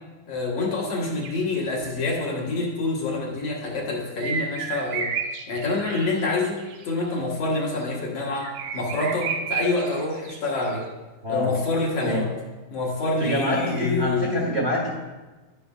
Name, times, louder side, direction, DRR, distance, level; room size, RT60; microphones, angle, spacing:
voice 1, 0.3-5.1 5.5-10.9 11.3-12.3 12.7-14.5, left 3 dB, 60° left, -3 dB, 2.2 m, -27 dB
sound 1, 1.2-1.3 4.2-7.2 7.4-7.8 8.4-10.6 12.0-12.1, right 6 dB, 70° right, 1.7 m, -32 dB
voice 2, 11.2-11.5 12.0-12.3 13.2-14.9, equal, 35° right, -3 dB, 1.1 m, -25 dB
10.5 x 10.0 x 2.4 m, 1.2 s
omnidirectional pair, 3.7 m